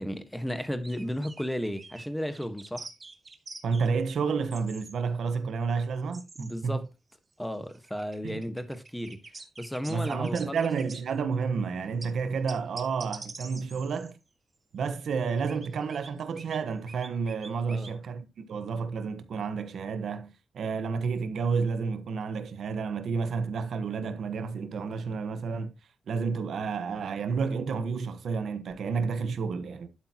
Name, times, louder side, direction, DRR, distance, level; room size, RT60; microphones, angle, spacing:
voice 1, 0.0-2.9 6.4-6.9 7.4-9.2 9.6-10.7 17.7-17.9, equal, 5° left, 1.5 m, -34 dB
sound 1, 0.8-1.4 1.7-2.1 2.3-3.9 4.5-4.9 5.3-5.4 6.1-6.5 7.4-11.2 12.0-12.1 12.5-14.1 15.3-16.6 16.9-17.9, right 3 dB, 25° right, 1.8 m, -45 dB
voice 2, 3.6-6.8 8.2-8.4 9.9-14.2 14.7-25.7 26.1-29.9, right 5 dB, 75° right, 1.3 m, -30 dB
11.5 x 8.8 x 3.0 m
wide cardioid pair, 155°, 0 cm